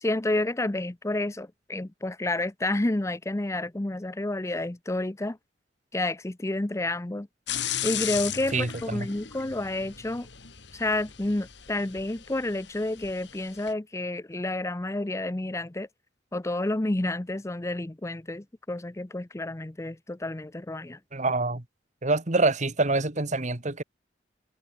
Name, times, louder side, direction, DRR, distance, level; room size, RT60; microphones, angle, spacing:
voice 1, 0.0-5.4 5.9-7.3 7.8-10.3 10.7-15.9 16.3-21.0, left 2 dB, 15° left, 0.6 m, -30 dB
sound 1, 7.5-13.7, left 10 dB, 80° left, 2.9 m, -36 dB
voice 2, 8.5-9.1 21.1-21.6 22.0-23.8, right 3 dB, 40° right, 1.8 m, -26 dB
head